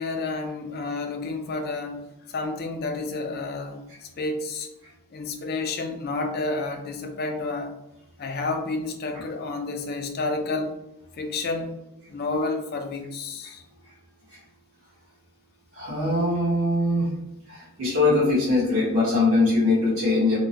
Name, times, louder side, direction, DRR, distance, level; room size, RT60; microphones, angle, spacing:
voice 1, 0.0-2.0 2.3-4.7 5.1-7.7 8.2-10.8 11.2-11.7 12.1-13.6, left 3 dB, 45° left, 5 dB, 0.4 m, -30 dB
voice 2, 15.7-17.1 17.5-20.4, left 2 dB, 65° right, -6 dB, 1.4 m, -22 dB
3.5 x 2.2 x 2.8 m, 0.91 s
head